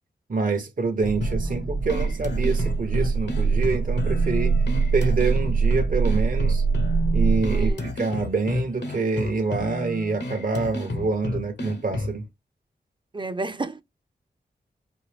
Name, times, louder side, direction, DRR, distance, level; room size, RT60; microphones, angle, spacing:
voice 1, 0.3-4.6 4.9-6.6 7.1-12.3, right 4 dB, 50° right, 0.9 m, -26 dB
sound 1, 1.0-7.7, right 5 dB, 75° right, 1.0 m, -23 dB
sound 2, 1.2-12.2, left 2 dB, 70° left, 1.1 m, -32 dB
voice 2, 7.5-7.8 13.1-13.8, right 3 dB, 25° right, 0.6 m, -31 dB
5.2 x 2.6 x 3.4 m
cardioid pair, 45°, 18 cm